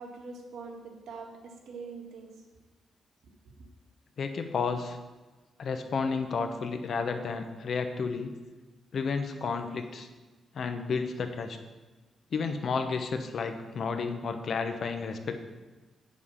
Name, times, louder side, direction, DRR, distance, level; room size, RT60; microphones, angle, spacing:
voice 1, 0.0-2.3, right 4 dB, 80° right, 1 dB, 1.8 m, -43 dB
voice 2, 4.2-5.0 5.6-8.3 8.9-10.1 10.5-11.6 12.3-15.4, left 5 dB, 60° left, 6 dB, 1.0 m, -31 dB
8.4 x 7.2 x 5.7 m, 1.2 s
cardioid pair, 120°, 0 cm